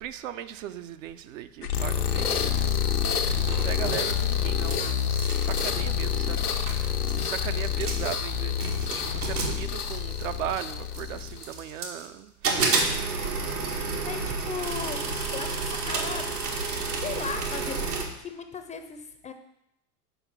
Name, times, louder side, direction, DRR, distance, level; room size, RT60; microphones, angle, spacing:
voice 1, 0.0-6.8 7.1-8.7 8.9-12.7, right 11 dB, 60° right, 10 dB, 0.7 m, -37 dB
sound 1, 1.6-11.6, left 8 dB, 90° left, 0.9 m, -27 dB
sound 2, 3.3-4.7 5.0-5.7 6.4-6.5 6.7-7.2 7.6-8.2 8.6-10.4 10.9-12.1 12.4-18.1, right 4 dB, 85° right, 1.8 m, -30 dB
voice 2, 14.0-15.1 15.3-16.3 16.6-19.3, left 6 dB, 15° left, 8 dB, 0.5 m, -37 dB
7.9 x 5.0 x 5.9 m, 0.82 s
figure-of-eight pair, 90°, 45 cm